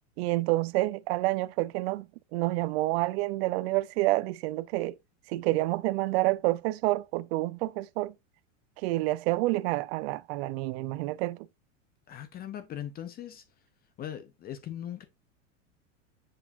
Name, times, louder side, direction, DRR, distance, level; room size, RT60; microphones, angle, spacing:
voice 1, 0.2-5.0 5.3-8.1 8.8-11.5, right 19 dB, 55° right, 0.5 m, -28 dB
voice 2, 12.1-13.4 14.0-15.0, left 10 dB, 25° left, 0.7 m, -39 dB
7.4 x 4.8 x 2.6 m
supercardioid pair, 135°, 37 cm